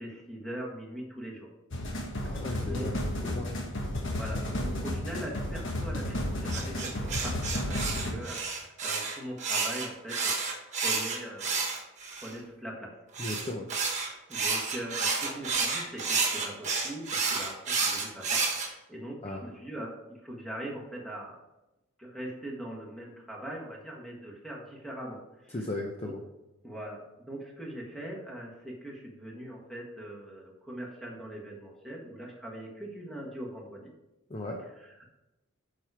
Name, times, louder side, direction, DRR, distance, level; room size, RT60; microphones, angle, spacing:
voice 1, 0.0-1.5 2.2-2.4 2.7-3.1 4.1-10.3 10.7-11.6 12.2-13.0 14.0-21.4 22.0-25.6 26.0-26.1 26.6-33.9 34.7-35.0, right 1 dB, ahead, -2 dB, 1.5 m, -41 dB
sound 1, 1.7-8.1, left 1 dB, 55° left, 1.3 m, -33 dB
voice 2, 2.2-3.6 13.2-13.7 19.2-19.4 25.5-26.2 34.3-34.6, left 2 dB, 25° left, 0 dB, 0.6 m, -36 dB
sound 2, 6.5-12.3 13.1-18.7, right 4 dB, 35° right, 1.4 m, -30 dB
7.5 x 5.0 x 4.8 m, 0.98 s
head